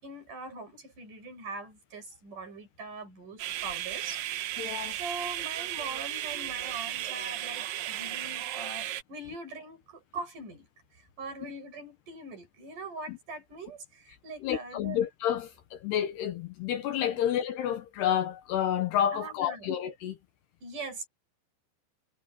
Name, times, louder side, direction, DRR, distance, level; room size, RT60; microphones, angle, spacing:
voice 1, 0.0-4.2 4.6-4.7 5.0-10.7 10.9-15.0 17.1-17.3 19.1-19.7 20.6-21.1, right 3 dB, 45° right, 8.8 m, -42 dB
sound 1, 3.4-9.0, right 13 dB, 70° right, 2.2 m, -35 dB
voice 2, 4.6-5.0 13.1-13.2 14.4-20.2, left 10 dB, 70° left, 3.0 m, -30 dB
omnidirectional pair, 5.3 m